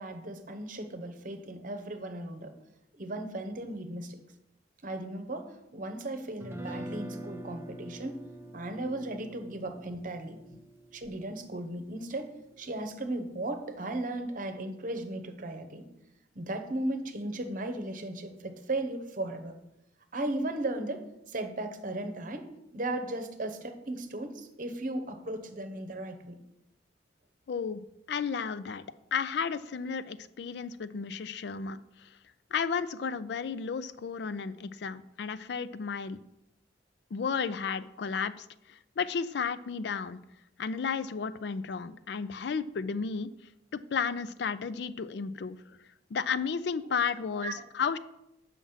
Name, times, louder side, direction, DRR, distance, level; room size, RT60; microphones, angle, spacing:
voice 1, 0.0-2.5 2.9-4.2 4.8-8.2 8.5-10.4 10.9-12.3 12.6-15.9 16.3-19.5 20.1-22.5 22.7-26.4 46.9-47.0 47.4-47.5, right 1 dB, 50° right, 7 dB, 0.9 m, -36 dB
Guitar, 6.4-12.5, equal, 15° right, 0.7 m, -44 dB
voice 2, 27.5-27.8 28.1-28.8 29.1-32.1 32.5-36.2 37.1-40.2 40.6-43.3 43.7-45.6 46.1-48.0, left 6 dB, 65° left, 15 dB, 0.4 m, -33 dB
7.4 x 5.8 x 5.6 m, 0.86 s
head